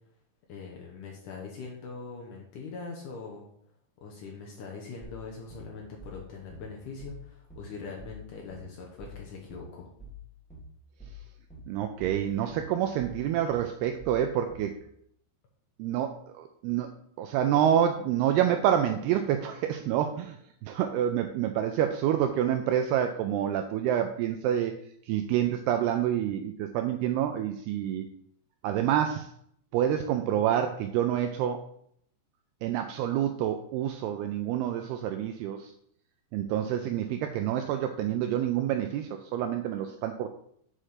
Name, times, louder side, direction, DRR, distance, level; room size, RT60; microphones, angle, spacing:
voice 1, 0.5-3.5 4.0-9.9, left 4 dB, 70° left, -1 dB, 1.9 m, -42 dB
sound 1, 5.0-14.8, left 2 dB, 5° left, 0.7 m, -46 dB
voice 2, 11.7-14.7 15.8-16.9 17.2-20.4 20.6-24.7 25.1-28.1 28.6-29.3 29.7-31.7 32.6-35.7 36.3-40.3, right 10 dB, 90° right, 6 dB, 2.3 m, -27 dB
7.6 x 5.0 x 5.6 m, 0.67 s
omnidirectional pair, 5.2 m